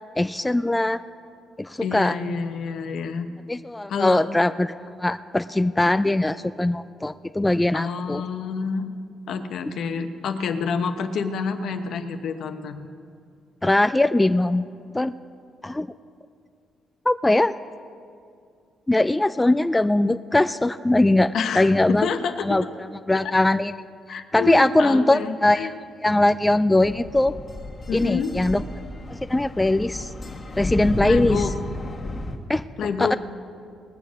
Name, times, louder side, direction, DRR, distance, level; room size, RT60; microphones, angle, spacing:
voice 1, 0.2-1.0 1.6-2.2 3.5-8.2 13.6-14.7 14.9-15.1 15.6-15.9 17.1-17.5 18.9-22.1 22.4-22.6 23.1-23.7 24.1-25.8 26.0-27.4 27.9-28.6 29.1-30.1 30.6-31.4 32.5-32.6 33.0-33.1, left 2 dB, 10° left, 12 dB, 0.3 m, -21 dB
voice 2, 1.8-3.3 3.9-4.3 7.7-8.9 9.3-12.9 21.3-22.7 23.1-23.4 24.1-25.7 27.9-28.3 31.1-31.5 32.8-33.2, left 6 dB, 70° left, 7 dB, 1.0 m, -28 dB
sound 1, 26.8-32.4, left 1 dB, 35° left, 1.7 m, -32 dB
20.0 x 7.2 x 6.4 m, 2.3 s
cardioid pair, 90°, 0 cm